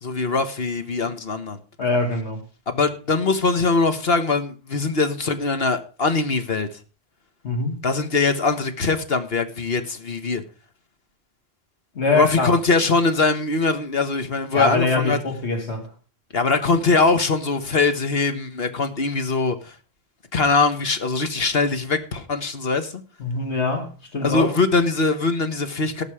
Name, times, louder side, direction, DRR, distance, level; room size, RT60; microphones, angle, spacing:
voice 1, 0.0-1.6 2.7-6.7 7.8-10.4 12.1-15.2 16.3-19.7 20.3-23.0 24.2-26.0, left 3 dB, 65° left, 1.7 m, -22 dB
voice 2, 1.8-2.4 7.4-7.8 12.0-12.5 14.5-15.9 23.2-24.5, left 3 dB, 85° left, 2.6 m, -23 dB
18.0 x 6.7 x 5.0 m
omnidirectional pair, 1.1 m